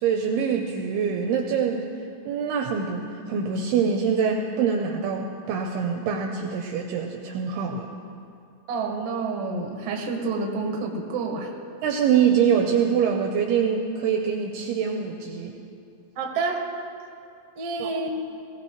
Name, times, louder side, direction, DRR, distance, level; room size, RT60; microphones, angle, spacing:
voice 1, 0.0-1.9 2.3-7.9 11.8-15.5 17.8-17.9, right 7 dB, 80° right, 2 dB, 2.4 m, -24 dB
voice 2, 8.7-11.5 16.1-16.6 17.5-18.1, right 4 dB, 65° right, 1 dB, 1.5 m, -28 dB
21.0 x 16.5 x 3.1 m, 2.4 s
omnidirectional pair, 5.4 m